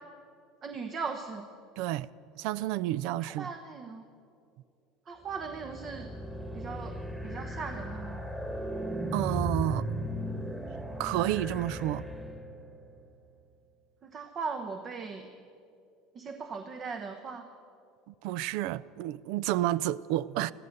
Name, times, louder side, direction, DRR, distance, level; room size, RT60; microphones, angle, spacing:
voice 1, 0.6-1.5 3.2-4.0 5.1-6.1 6.5-8.2 14.0-15.3 16.1-17.5, right 5 dB, 40° right, 1.0 m, -38 dB
voice 2, 1.8-2.1 2.4-3.5 9.1-9.9 11.0-12.0 18.1-20.5, right 14 dB, 70° right, 0.4 m, -30 dB
sound 1, 5.3-12.7, right 1 dB, 10° right, 1.9 m, -36 dB
15.0 x 14.0 x 6.7 m
supercardioid pair, 100°, 0 cm